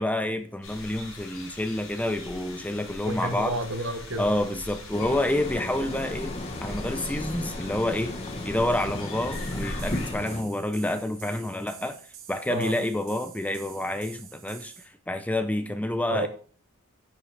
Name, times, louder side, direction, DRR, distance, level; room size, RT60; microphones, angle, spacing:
voice 1, 0.0-3.6 4.2-6.4 6.6-12.0 12.3-14.7 15.1-16.3, left 1 dB, 5° left, 0.5 m, -28 dB
sound 1, 0.6-10.1, left 2 dB, 75° left, 4.9 m, -40 dB
voice 2, 3.1-4.3 12.5-12.8 16.1-16.3, right 1 dB, 60° right, 1.3 m, -30 dB
sound 2, 4.9-10.4, left 1 dB, 30° left, 1.0 m, -35 dB
sound 3, 9.3-14.9, right 9 dB, 85° right, 1.8 m, -47 dB
10.5 x 7.5 x 3.3 m
head